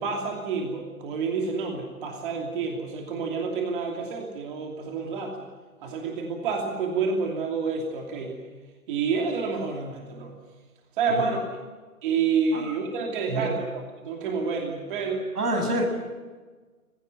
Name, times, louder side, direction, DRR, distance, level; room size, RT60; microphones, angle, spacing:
voice 1, 0.0-5.4 5.8-8.4 8.9-10.3 11.0-11.4 12.0-13.7 14.0-15.3, right 5 dB, 35° right, 1 dB, 2.8 m, -28 dB
voice 2, 15.4-15.8, right 1 dB, 85° right, 5 dB, 7.6 m, -26 dB
23.0 x 16.0 x 9.4 m, 1.4 s
hypercardioid pair, 160°, 45 cm